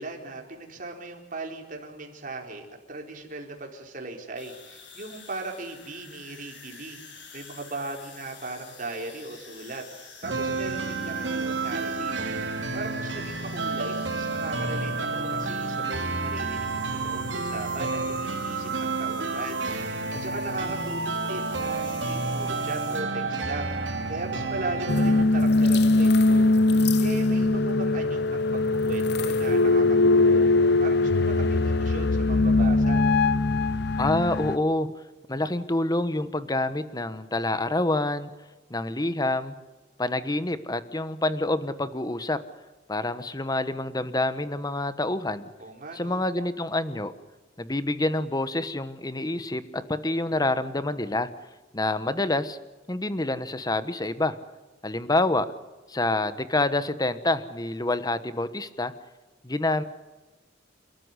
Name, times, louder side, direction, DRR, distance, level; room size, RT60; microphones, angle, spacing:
voice 1, 0.0-7.0 7.3-12.3 12.7-26.5 27.0-30.5 30.8-33.0 45.6-46.2, right 2 dB, 45° right, 2 dB, 4.3 m, -38 dB
sound 1, 4.4-23.0, left 5 dB, 85° left, 6.8 m, -48 dB
sound 2, 10.2-25.2, right 3 dB, 75° right, 2.7 m, -30 dB
sound 3, 24.9-34.6, left 2 dB, 65° left, 0.8 m, -21 dB
voice 2, 34.0-34.9 35.3-38.3 38.7-39.5 40.0-42.4 42.9-45.5 45.9-47.1 47.6-51.3 51.7-52.6 52.9-54.3 54.8-55.5 55.9-58.9 59.4-59.8, left 2 dB, 20° left, 13 dB, 1.2 m, -27 dB
29.0 x 13.5 x 9.8 m, 1.2 s
head